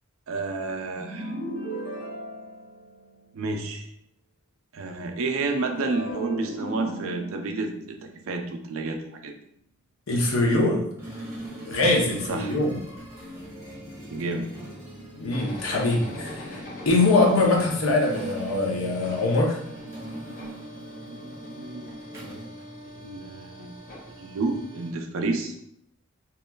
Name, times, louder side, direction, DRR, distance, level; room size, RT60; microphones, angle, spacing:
voice 1, 0.3-1.3 3.3-3.9 4.7-9.3 12.3-12.6 14.1-14.5 21.1-21.9 22.2-22.4 23.0-23.7 24.2-25.5, right 3 dB, 85° right, 4 dB, 0.4 m, -30 dB
sound 1, 0.9-3.3 5.7-9.1, right 1 dB, 60° left, 1.0 m, -36 dB
voice 2, 10.1-10.9 11.7-12.8 15.1-19.6, left 2 dB, 85° left, -1 dB, 0.6 m, -23 dB
sound 2, 11.0-23.3, right 1 dB, 10° right, 0.5 m, -42 dB
sound 3, 15.3-24.9, left 1 dB, 45° left, 0.5 m, -43 dB
2.8 x 2.3 x 2.2 m, 0.73 s
head